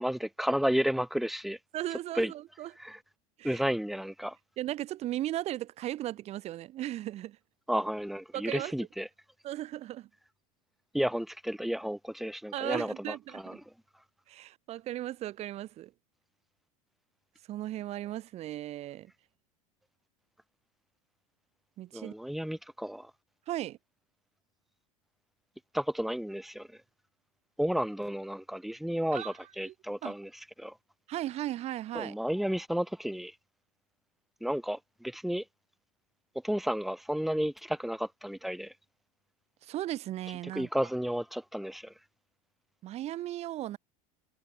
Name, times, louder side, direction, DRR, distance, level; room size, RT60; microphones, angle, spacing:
voice 1, 0.0-1.6 2.1-2.3 2.8-3.0 3.4-4.4 7.7-9.1 10.9-13.6 21.9-23.1 25.7-26.7 27.6-30.3 30.6-30.7 31.9-33.3 34.4-35.4 36.4-38.7 40.5-41.9, equal, ahead, 1.1 m, -32 dB
voice 2, 1.7-2.7 3.4-3.6 4.6-7.4 8.3-8.7 9.4-10.1 12.5-13.6 14.3-15.9 17.5-19.1 21.8-22.1 23.5-23.8 29.1-29.3 29.6-29.7 30.0-30.1 31.1-32.1 39.6-40.9 42.8-43.8, right 14 dB, 35° right, 3.4 m, -36 dB
supercardioid pair, 150°, 18 cm